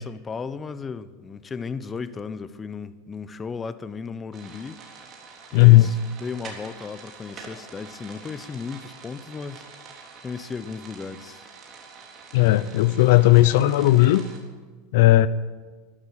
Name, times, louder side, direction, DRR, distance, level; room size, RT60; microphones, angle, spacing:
voice 1, 0.0-4.8 5.5-9.6 10.2-11.5, left 5 dB, 20° left, 0.8 m, -35 dB
sound 1, 4.3-14.4, right 5 dB, 35° right, 3.5 m, -45 dB
voice 2, 5.5-5.9 12.3-14.2 14.9-15.3, left 17 dB, 70° left, 0.6 m, -15 dB
13.0 x 12.5 x 9.0 m
supercardioid pair, 125°, 0 cm